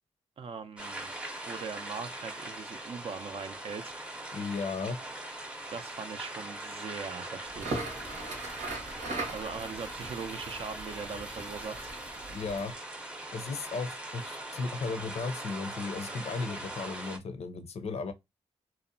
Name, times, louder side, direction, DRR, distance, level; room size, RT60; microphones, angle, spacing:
voice 1, 0.4-1.1 1.5-4.0 5.7-7.8 9.3-11.9, right 5 dB, 55° right, 0.4 m, -40 dB
sound 1, 0.8-17.2, right 1 dB, 10° right, 0.6 m, -41 dB
voice 2, 4.3-5.0 12.3-12.7 13.3-18.1, left 4 dB, 65° left, 0.5 m, -35 dB
Crackle, 7.5-12.7, right 3 dB, 85° right, 0.9 m, -40 dB
2.7 x 2.0 x 2.5 m
cardioid pair, 60°, 12 cm